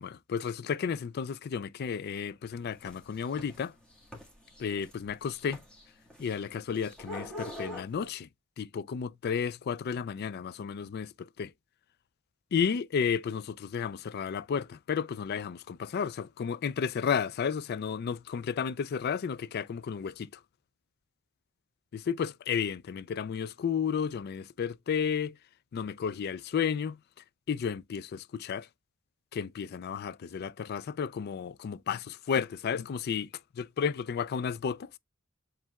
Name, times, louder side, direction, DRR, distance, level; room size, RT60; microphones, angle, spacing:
voice 1, 0.0-3.7 4.6-5.6 6.2-8.3 8.6-11.1 11.4-11.5 12.5-20.3 21.9-25.4 25.7-27.0 27.5-28.7 29.3-33.3 33.5-34.9, left 7 dB, 50° left, 0.3 m, -32 dB
sound 1, 2.5-8.1, left 1 dB, 5° left, 1.7 m, -44 dB
7.3 x 3.2 x 2.2 m
head